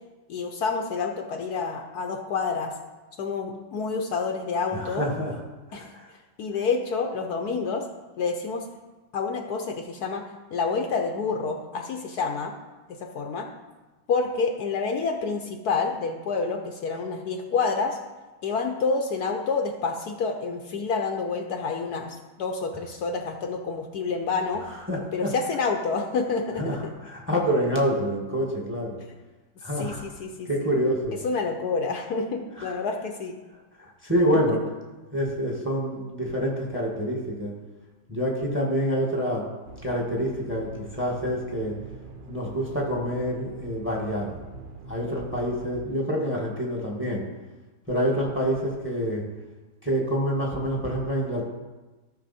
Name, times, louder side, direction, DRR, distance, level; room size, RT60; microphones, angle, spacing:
voice 1, 0.3-2.7 3.2-5.1 5.7-5.9 6.4-7.9 8.2-8.7 9.1-10.2 10.5-12.6 12.9-13.5 14.1-18.0 18.4-24.6 25.1-26.9 29.7-30.5 31.2-33.4 34.5-34.6, left 4 dB, 65° left, 4 dB, 1.2 m, -28 dB
voice 2, 4.7-5.3 5.7-6.1 24.9-25.3 26.6-29.0 29.6-30.0 30.5-31.2 32.6-32.7 33.8-34.6 35.1-37.5 38.1-39.5 39.8-41.8 42.3-44.4 44.9-47.2 47.9-49.3 49.8-51.4, equal, 5° right, -1 dB, 1.6 m, -27 dB
sound 1, 39.6-45.8, right 4 dB, 60° right, 0.5 m, -43 dB
13.5 x 6.1 x 4.2 m, 1.2 s
omnidirectional pair, 1.9 m